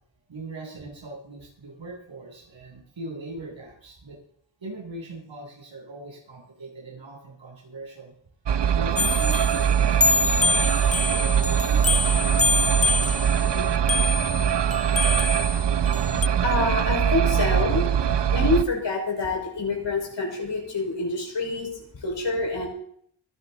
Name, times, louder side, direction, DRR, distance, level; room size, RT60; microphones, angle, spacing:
voice 1, 0.3-4.2 4.6-8.1 8.7-13.7, right 2 dB, 80° right, -2 dB, 8.0 m, -40 dB
sound 1, 8.5-18.6, right 8 dB, 65° right, 0.8 m, -22 dB
sound 2, 9.0-16.3, left 3 dB, 15° left, 0.7 m, -25 dB
voice 2, 16.0-17.9 18.3-22.7, left 2 dB, 70° left, 1 dB, 5.5 m, -27 dB
23.5 x 11.0 x 4.2 m, 0.64 s
cardioid pair, 60°, 45 cm